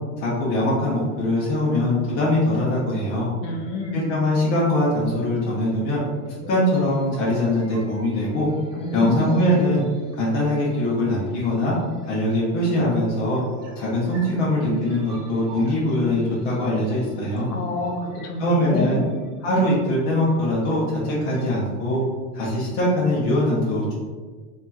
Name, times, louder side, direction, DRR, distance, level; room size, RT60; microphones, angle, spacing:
voice 1, 0.2-3.3 3.9-6.0 6.5-8.5 8.9-9.8 10.1-11.7 12.0-13.4 13.8-17.5 18.4-19.0 19.4-22.0 22.3-23.9, left 1 dB, 25° left, -7 dB, 0.3 m, -22 dB
sound 1, 2.1-22.0, right 2 dB, 85° right, 0.9 m, -42 dB
voice 2, 3.4-4.1 8.8-9.2 17.5-19.1, left 1 dB, 80° left, 2 dB, 0.7 m, -28 dB
2.7 x 2.2 x 2.2 m, 1.5 s
hypercardioid pair, 125°, 46 cm